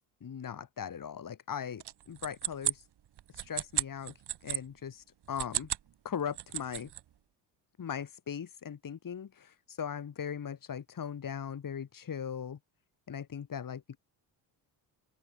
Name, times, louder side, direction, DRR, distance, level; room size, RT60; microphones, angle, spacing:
voice 1, 0.2-2.8 3.3-4.1 4.4-5.7 6.0-6.9 7.8-12.6 13.1-14.0, left 8 dB, 40° left, 2.9 m, -39 dB
sound 1, 1.8-4.6 5.2-5.9 6.2-7.0, right 11 dB, 50° right, 1.9 m, -34 dB
open air
hypercardioid pair, 60°, 50 cm